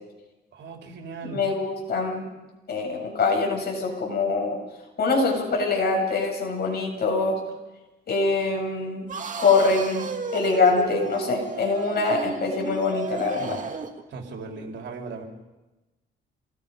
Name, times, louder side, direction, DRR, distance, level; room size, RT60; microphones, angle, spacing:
voice 1, 0.5-1.4 13.4-13.6 14.1-15.2, right 4 dB, 65° right, 2 dB, 4.1 m, -37 dB
voice 2, 1.2-2.3 2.7-4.6 5.0-7.4 8.1-9.1 9.4-13.6, left 3 dB, 55° left, 0 dB, 8.0 m, -24 dB
sound 1, 9.1-14.0, right 4 dB, 40° right, 2.4 m, -34 dB
27.5 x 20.0 x 5.5 m, 1.1 s
cardioid pair, 90°, 20 cm